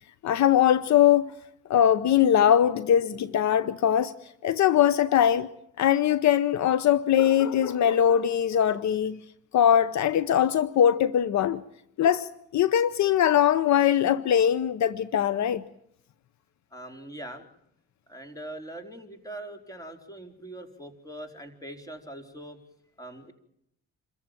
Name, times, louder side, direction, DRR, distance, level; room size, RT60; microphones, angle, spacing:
voice 1, 0.2-1.3 1.7-4.1 4.4-5.5 5.8-9.2 9.5-11.6 12.0-15.6, left 10 dB, 65° left, 0.9 m, -21 dB
voice 2, 16.7-17.5 18.1-22.6 23.0-23.3, right 1 dB, 10° left, 4.4 m, -42 dB
27.0 x 14.5 x 9.0 m
cardioid pair, 90°, 30 cm